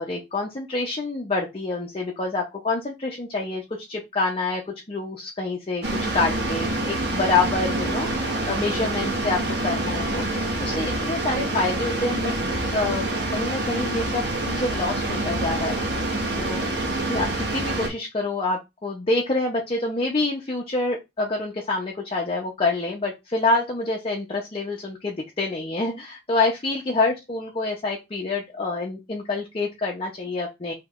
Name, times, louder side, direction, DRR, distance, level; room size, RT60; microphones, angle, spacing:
voice 1, 0.0-5.8 6.1-12.3 12.7-14.2 14.5-15.9 16.3-30.7, left 3 dB, 35° left, -1 dB, 0.7 m, -27 dB
sound 1, 5.8-17.9, right 2 dB, 70° right, 1.1 m, -26 dB
3.1 x 2.8 x 3.6 m, 0.22 s
head